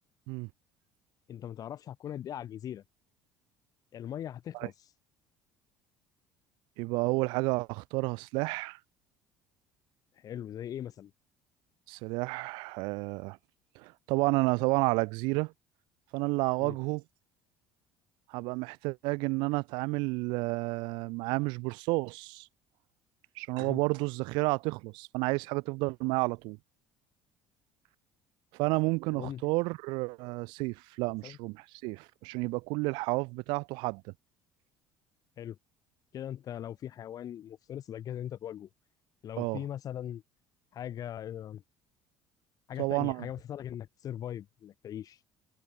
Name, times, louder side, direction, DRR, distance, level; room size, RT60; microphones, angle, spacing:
voice 1, 1.3-2.8 3.9-4.7 10.2-11.1 16.6-16.8 23.6-23.8 29.1-29.4 31.2-31.4 35.4-35.6 36.1-38.7 39.2-40.2 40.7-41.6 42.7-45.2, left 10 dB, 50° left, 5.9 m, -40 dB
voice 2, 6.8-8.8 11.9-13.4 13.8-15.5 16.1-17.0 18.3-22.5 23.4-26.6 28.5-34.0 39.4-39.6 42.8-43.3, right 26 dB, 80° right, 7.5 m, -31 dB
supercardioid pair, 95°, 8 cm